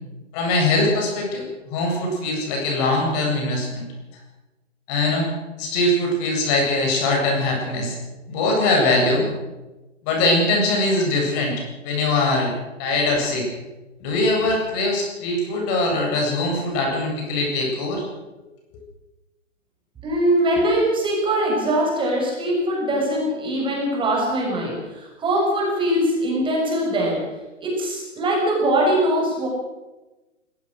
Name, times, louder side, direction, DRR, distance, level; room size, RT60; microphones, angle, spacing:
voice 1, 0.3-3.8 4.9-5.3 5.6-8.0 8.3-9.3 10.0-12.5 12.8-13.5 14.0-18.1, left 2 dB, 35° left, 0 dB, 8.0 m, -22 dB
voice 2, 20.0-27.3 27.6-29.5, right 1 dB, 15° right, -2 dB, 6.8 m, -22 dB
20.5 x 20.0 x 6.6 m, 1.1 s
figure-of-eight pair, 130°, 38 cm